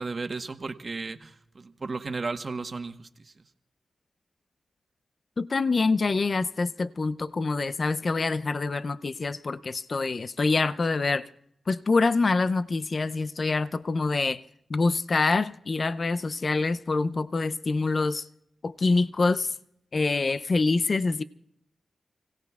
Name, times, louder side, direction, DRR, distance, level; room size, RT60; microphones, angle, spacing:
voice 1, 0.0-3.1, right 3 dB, 50° right, 1.2 m, -34 dB
voice 2, 5.4-11.3 11.7-14.4 14.7-18.3 18.6-19.5 19.9-21.2, left 3 dB, 55° left, 0.5 m, -25 dB
30.0 x 17.0 x 2.4 m
cardioid pair, 45°, 0 cm